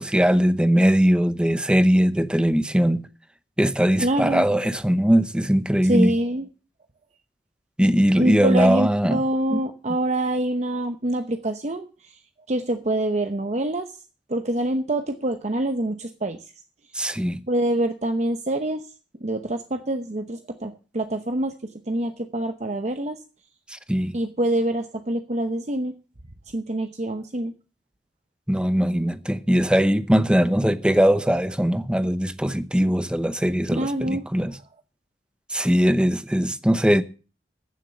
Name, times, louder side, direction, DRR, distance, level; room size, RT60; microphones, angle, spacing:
voice 1, 0.0-3.0 3.6-6.1 7.8-9.2 9.5-9.6 16.9-17.4 23.7-24.2 28.5-34.6 35.5-37.0, equal, 5° right, 0.8 m, -20 dB
voice 2, 4.0-4.5 5.9-6.5 8.2-11.9 12.5-13.9 14.3-16.4 17.5-18.8 19.2-21.5 21.9-23.2 24.1-25.9 26.5-27.5 33.7-34.2, right 1 dB, 40° right, 0.9 m, -25 dB
15.0 x 7.4 x 6.8 m
head